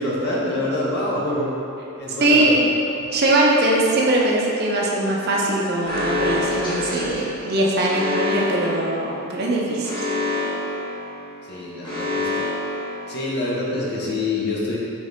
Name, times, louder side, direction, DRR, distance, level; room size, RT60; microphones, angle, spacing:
voice 1, 0.0-1.5 2.0-2.6 3.0-3.1 11.5-12.5 13.1-14.8, left 2 dB, 50° left, -5 dB, 0.7 m, -26 dB
voice 2, 2.2-2.6 3.1-10.1, right 1 dB, 50° right, -3 dB, 0.5 m, -21 dB
Alarm, 5.9-13.6, left 1 dB, 20° left, 1.0 m, -27 dB
5.0 x 3.1 x 2.6 m, 2.8 s
head